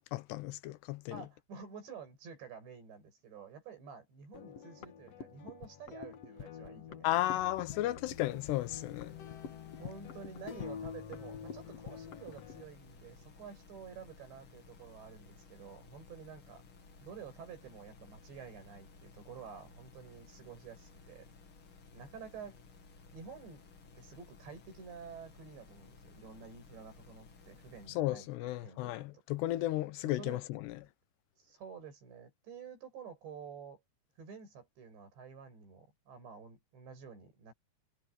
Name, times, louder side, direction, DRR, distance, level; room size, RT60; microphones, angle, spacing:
voice 1, 0.0-1.2 7.0-9.2 28.0-30.8, left 16 dB, 75° left, 2.8 m, -34 dB
voice 2, 1.1-7.4 9.8-16.6 17.0-21.3 21.9-22.6 23.1-23.6 24.0-29.2 30.0-30.4 31.4-33.8 34.2-37.5, right 6 dB, 75° right, 9.6 m, -50 dB
sound 1, 4.3-12.6, left 7 dB, 60° left, 1.7 m, -46 dB
sound 2, 8.0-27.9, left 4 dB, 35° left, 2.4 m, -57 dB
omnidirectional pair, 5.1 m